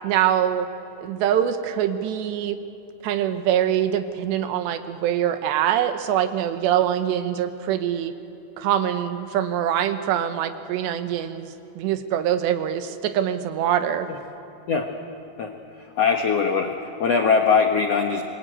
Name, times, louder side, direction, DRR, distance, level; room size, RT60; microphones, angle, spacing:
voice 1, 0.0-0.7 1.0-2.6 3.0-8.1 8.6-11.5 11.8-14.1, right 10 dB, 90° right, 9 dB, 3.3 m, -24 dB
voice 2, 16.0-18.2, left 5 dB, 75° left, 3 dB, 1.4 m, -21 dB
26.0 x 21.5 x 9.1 m, 2.7 s
omnidirectional pair, 4.8 m